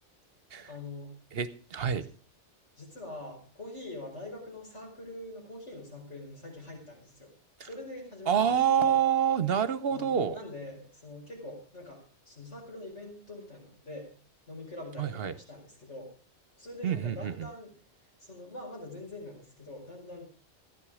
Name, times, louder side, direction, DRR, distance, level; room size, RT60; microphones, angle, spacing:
voice 1, 0.7-1.2 1.9-2.1 2.8-7.3 7.6-8.9 9.9-14.1 14.5-16.1 16.6-17.7 18.2-20.3, left 2 dB, 80° left, 0 dB, 5.4 m, -44 dB
voice 2, 1.3-2.0 7.6-7.7 8.3-10.4 15.0-15.3 16.8-17.5, right 8 dB, 60° right, 14 dB, 1.0 m, -27 dB
15.0 x 11.0 x 4.9 m, 0.38 s
omnidirectional pair, 1.2 m